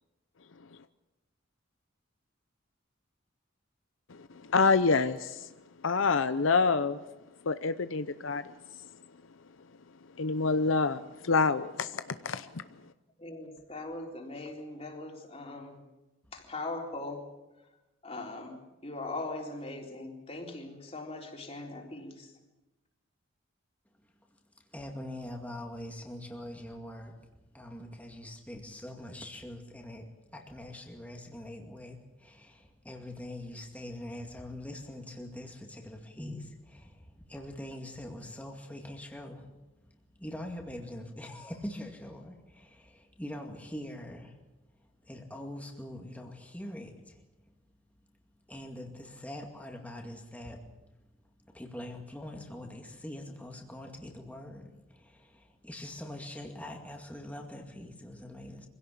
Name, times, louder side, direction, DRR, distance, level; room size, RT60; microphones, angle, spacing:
voice 1, 4.5-5.5 5.8-7.0 7.5-8.4 10.2-12.5, left 4 dB, 75° left, 0.7 m, -26 dB
voice 2, 13.2-15.8 16.3-17.2 18.0-22.3, left 2 dB, 30° left, 3.9 m, -40 dB
voice 3, 24.6-27.2 27.5-39.5 39.8-39.9 40.2-44.4 44.8-47.2 48.5-50.7 51.4-58.7, left 1 dB, 5° left, 2.2 m, -43 dB
24.5 x 17.0 x 8.5 m
head